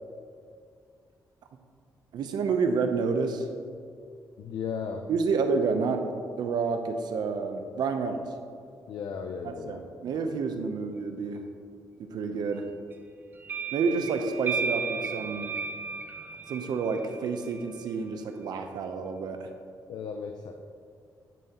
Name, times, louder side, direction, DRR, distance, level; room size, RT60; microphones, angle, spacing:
voice 1, 2.1-3.5 5.1-6.0 6.4-8.2 9.4-11.4 12.0-12.7 13.7-15.5 16.5-19.5, right 4 dB, 75° right, 6 dB, 0.7 m, -29 dB
voice 2, 4.4-5.1 8.9-9.8 19.9-20.5, left 6 dB, 75° left, 4 dB, 0.5 m, -35 dB
sound 1, 13.4-17.9, right 4 dB, 30° right, 0.6 m, -34 dB
10.0 x 7.3 x 3.0 m, 2.3 s
cardioid pair, 110°, 7 cm